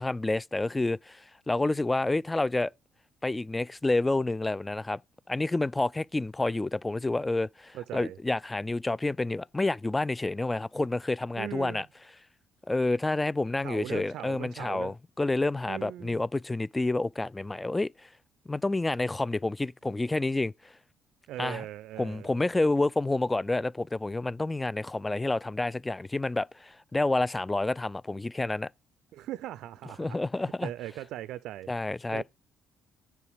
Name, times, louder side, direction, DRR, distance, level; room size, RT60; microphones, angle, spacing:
voice 1, 0.0-2.7 3.2-5.0 5.3-11.9 12.7-18.1 18.5-20.5 21.4-21.6 22.0-28.7 30.0-30.7 31.7-32.2, left 2 dB, 20° left, 0.4 m, -29 dB
voice 2, 7.7-8.2 11.4-11.8 13.6-14.9 15.7-16.2 21.3-22.3 29.1-31.7 32.1-32.2, right 13 dB, 70° right, 0.4 m, -39 dB
9.7 x 4.6 x 4.9 m
hypercardioid pair, 50°, 0 cm